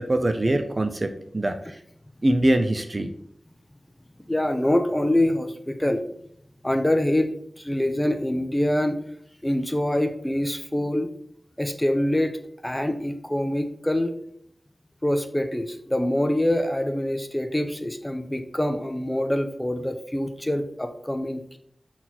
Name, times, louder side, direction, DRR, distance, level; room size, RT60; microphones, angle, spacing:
voice 1, 0.0-1.8 2.2-3.1, right 1 dB, 40° right, 8 dB, 0.7 m, -23 dB
voice 2, 4.3-6.0 6.6-7.3 7.6-9.0 9.4-11.1 11.6-12.4 12.6-14.1 15.0-21.6, left 1 dB, 15° left, 7 dB, 0.9 m, -25 dB
7.6 x 4.4 x 4.2 m, 0.69 s
wide cardioid pair, 70°, 0 cm